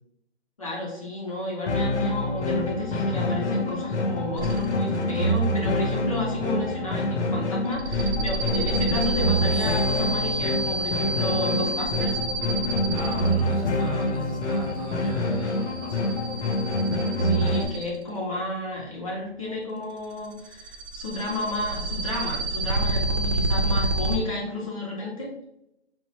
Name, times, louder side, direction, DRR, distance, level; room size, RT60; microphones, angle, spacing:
voice 1, 0.6-12.2 17.2-25.3, left 2 dB, 30° left, -5 dB, 0.6 m, -32 dB
sound 1, 1.7-17.7, left 1 dB, 85° left, 0.7 m, -26 dB
sound 2, 4.4-5.0 5.3-5.8 7.7-18.1 20.0-24.2, right 2 dB, 75° right, 0.6 m, -30 dB
voice 2, 12.9-16.4, equal, 30° right, -5 dB, 0.7 m, -38 dB
2.9 x 2.0 x 2.7 m, 0.83 s
hypercardioid pair, 165°, 34 cm